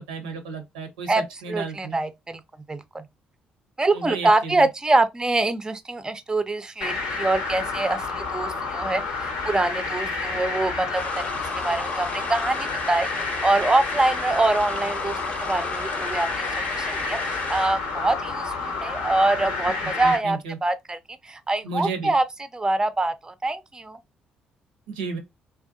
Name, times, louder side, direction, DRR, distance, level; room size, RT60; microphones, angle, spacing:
voice 1, 0.0-2.0 3.9-4.6 20.0-20.6 21.6-22.1 24.9-25.2, right 4 dB, 80° right, 0.5 m, -32 dB
voice 2, 1.5-2.4 2.7-3.0 3.8-21.0 21.2-22.2 22.5-24.0, right 2 dB, 15° right, 0.4 m, -25 dB
sound 1, 6.8-20.2, left 4 dB, 75° left, 0.6 m, -30 dB
sound 2, 10.9-17.7, left 3 dB, 35° left, 0.6 m, -35 dB
2.5 x 2.1 x 2.5 m
figure-of-eight pair, 45°, 4 cm